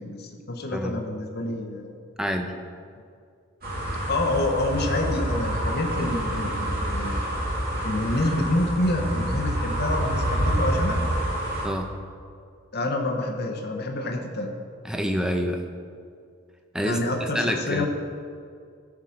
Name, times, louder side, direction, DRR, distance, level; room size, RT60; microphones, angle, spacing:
voice 1, 0.0-1.9 4.1-7.2 7.8-11.1 12.7-14.5 16.8-17.9, left 1 dB, 50° left, 2 dB, 0.9 m, -27 dB
voice 2, 2.2-2.5 11.6-11.9 14.8-15.6 16.7-17.9, equal, 5° right, 4 dB, 0.6 m, -27 dB
sound 1, 3.6-11.7, right 1 dB, 45° right, 2.3 m, -27 dB
13.0 x 4.8 x 5.8 m, 2.2 s
head